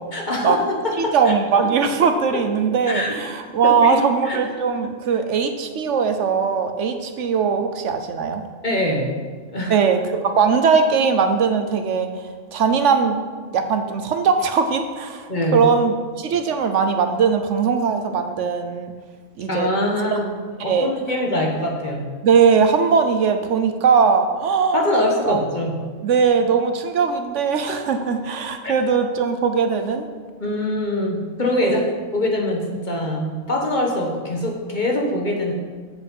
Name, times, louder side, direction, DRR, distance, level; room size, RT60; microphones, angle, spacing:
voice 1, 0.1-1.3 1.6-1.7 2.3-2.4 2.9-4.0 4.2-4.4 8.6-9.8 15.3-15.7 19.5-20.4 20.6-22.1 24.7-25.9 28.6-28.7 30.4-31.8 32.1-35.5, left 1 dB, 40° left, 0 dB, 1.4 m, -24 dB
voice 2, 1.0-8.4 9.7-12.1 12.5-13.2 13.5-18.9 19.4-19.7 20.1-20.2 20.6-20.9 22.2-25.4 26.0-30.1 31.6-31.9, right 6 dB, 70° right, 7 dB, 1.0 m, -20 dB
7.9 x 7.2 x 5.4 m, 1.5 s
omnidirectional pair, 1.3 m